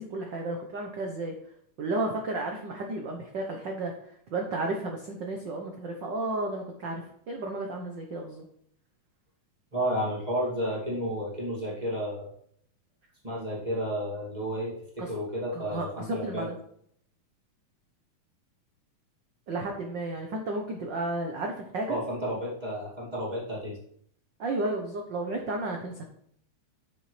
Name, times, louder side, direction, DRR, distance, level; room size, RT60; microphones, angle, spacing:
voice 1, 0.0-1.3 1.8-8.5 15.0-15.1 15.5-16.6 19.5-22.0 24.4-26.0, right 2 dB, 85° right, 2 dB, 1.0 m, -33 dB
voice 2, 9.7-12.3 13.2-16.5 21.9-23.8, equal, 15° right, -5 dB, 2.0 m, -32 dB
10.0 x 6.5 x 3.3 m, 0.67 s
omnidirectional pair, 3.6 m